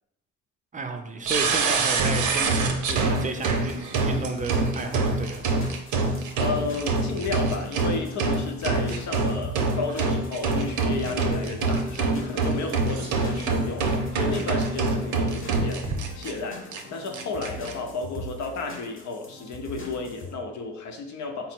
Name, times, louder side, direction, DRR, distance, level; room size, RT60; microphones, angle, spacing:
voice 1, 0.7-5.5, right 3 dB, 25° right, 6 dB, 0.5 m, -32 dB
sound 1, 1.3-16.3 16.7-16.8 17.1-17.7, right 3 dB, 80° right, 0.7 m, -25 dB
sound 2, 2.9-20.3, left 1 dB, 45° left, 0.9 m, -41 dB
voice 2, 6.4-21.5, left 3 dB, 70° left, 3 dB, 0.7 m, -33 dB
4.0 x 2.0 x 4.3 m, 0.82 s
cardioid pair, 90°, 30 cm